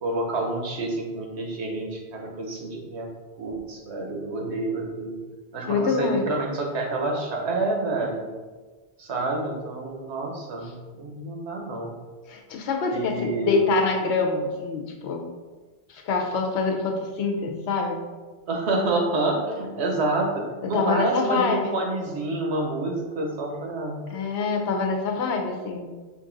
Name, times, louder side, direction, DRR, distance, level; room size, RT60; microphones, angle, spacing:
voice 1, 0.0-3.1 3.4-5.2 5.5-8.3 9.0-12.0 12.9-13.6 18.5-24.0, right 2 dB, 90° right, 1 dB, 1.1 m, -28 dB
voice 2, 5.7-6.3 12.3-15.2 15.9-18.0 20.7-21.7 24.1-25.9, left 4 dB, 85° left, 2 dB, 1.0 m, -25 dB
5.2 x 2.6 x 3.8 m, 1.3 s
omnidirectional pair, 1.1 m